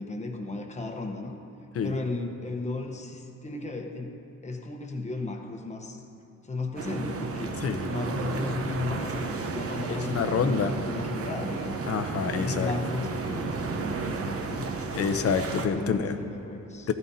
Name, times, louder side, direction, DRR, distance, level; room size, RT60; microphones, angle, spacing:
voice 1, 0.0-1.3 1.8-6.0 6.4-7.6 7.9-11.9 12.4-14.7 15.7-16.9, left 2 dB, 20° left, 3 dB, 1.0 m, -35 dB
sound 1, 6.8-15.7, right 4 dB, 50° right, 0.9 m, -33 dB
voice 2, 9.9-10.7 11.9-12.7 14.9-16.2 16.9-17.0, left 6 dB, 50° left, 8 dB, 0.7 m, -27 dB
15.0 x 14.5 x 2.8 m, 2.8 s
cardioid pair, 145°, 31 cm